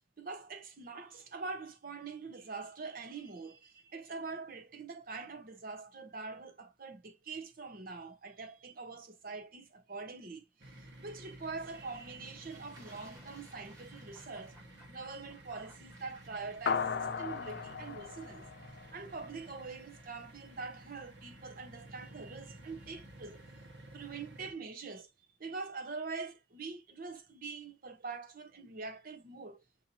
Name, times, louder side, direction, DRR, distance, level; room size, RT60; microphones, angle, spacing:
voice 1, 0.2-10.5 11.0-14.6 14.9-18.5 18.9-23.4 23.9-25.1 25.4-29.6, right 4 dB, 50° right, 0.9 m, -44 dB
sound 1, 10.6-24.5, right 1 dB, 70° right, 1.3 m, -53 dB
Fowl / Bird / Water, 11.5-18.1, equal, 20° right, 2.0 m, -61 dB
sound 2, 16.7-19.4, left 6 dB, 65° left, 0.5 m, -36 dB
5.7 x 2.7 x 2.7 m
head